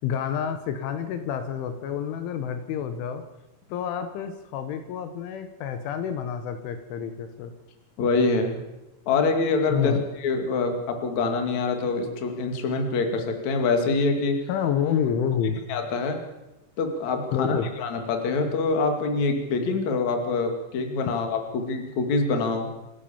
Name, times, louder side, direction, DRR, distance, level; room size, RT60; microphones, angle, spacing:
voice 1, 0.0-3.2 3.7-7.5 9.7-10.0 14.5-15.6 17.3-17.7, left 8 dB, 75° left, 8 dB, 3.6 m, -28 dB
voice 2, 8.0-8.6 9.1-9.9 10.2-14.4 15.7-16.2 16.8-22.7, left 3 dB, 45° left, 5 dB, 3.0 m, -25 dB
26.5 x 15.0 x 7.2 m, 1.0 s
omnidirectional pair, 5.7 m